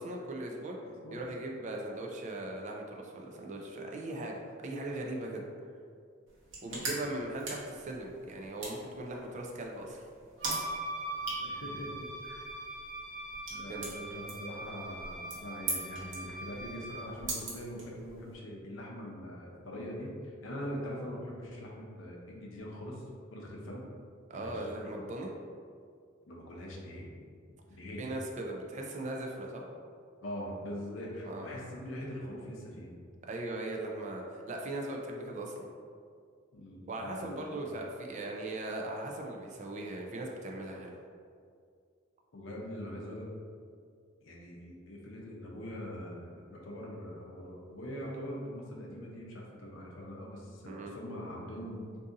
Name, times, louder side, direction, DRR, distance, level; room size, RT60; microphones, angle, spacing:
voice 1, 0.0-0.8 1.1-5.4 6.6-10.1 13.7-13.9 24.3-25.3 28.0-29.6 31.2-31.5 33.3-35.7 36.9-41.0 50.7-50.9, right 2 dB, 35° right, 0 dB, 0.3 m, -39 dB
voice 2, 0.8-1.3 6.6-7.0 11.3-12.5 13.5-23.0 23.3-23.9 24.3-24.9 26.3-27.1 27.7-28.1 30.2-32.9 36.5-37.8 42.3-43.3 44.2-51.9, equal, 75° left, -2 dB, 0.6 m, -43 dB
sound 1, 6.3-18.4, right 2 dB, 65° right, 0.8 m, -43 dB
Wind instrument woodwind instrument, 10.4-17.2, right 2 dB, 90° right, 1.0 m, -41 dB
2.6 x 2.6 x 3.6 m, 2.2 s
head